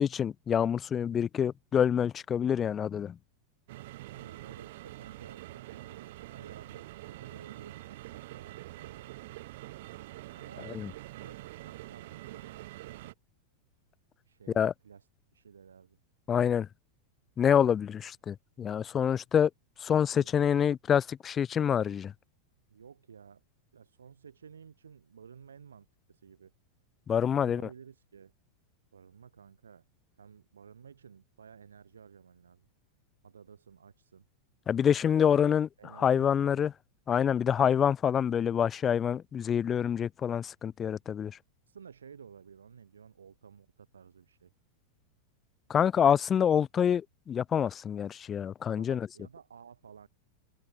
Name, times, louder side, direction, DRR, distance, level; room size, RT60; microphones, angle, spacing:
voice 1, 0.0-3.2 10.7-10.9 14.6-14.7 16.3-16.7 17.4-19.5 19.8-22.1 27.1-27.6 34.7-35.7 36.0-36.7 37.1-41.3 45.7-49.0, left 8 dB, 25° left, 0.3 m, -26 dB
sound 1, 3.7-13.1, right 17 dB, 55° right, 0.7 m, -45 dB
voice 2, 4.1-9.3 10.3-12.8 14.3-15.1 15.3-16.0 20.1-20.3 22.7-23.4 23.7-26.5 27.1-28.3 28.9-29.8 30.2-32.7 33.2-34.3 35.3-36.7 41.7-44.5 48.8-50.1, right 7 dB, 70° right, 5.7 m, -53 dB
open air
figure-of-eight pair, 90°, 0 cm